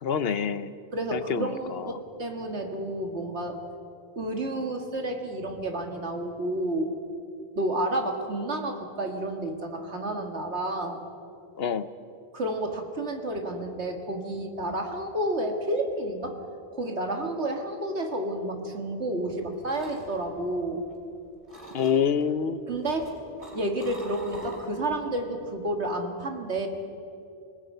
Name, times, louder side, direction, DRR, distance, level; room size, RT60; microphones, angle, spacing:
voice 1, 0.0-0.7 1.1-2.0 11.6-11.9 21.7-22.6, left 7 dB, 60° left, 13 dB, 1.0 m, -27 dB
voice 2, 0.9-3.6 4.2-6.9 7.6-11.0 12.3-16.4 16.7-20.8 22.7-23.1 23.5-26.7, right 1 dB, 70° right, 3 dB, 2.2 m, -30 dB
sound 1, 19.3-21.1 21.5-22.2 22.8-25.0 25.3-25.7, right 1 dB, 10° right, 6.0 m, -45 dB
28.5 x 19.5 x 5.6 m, 2.7 s
omnidirectional pair, 1.2 m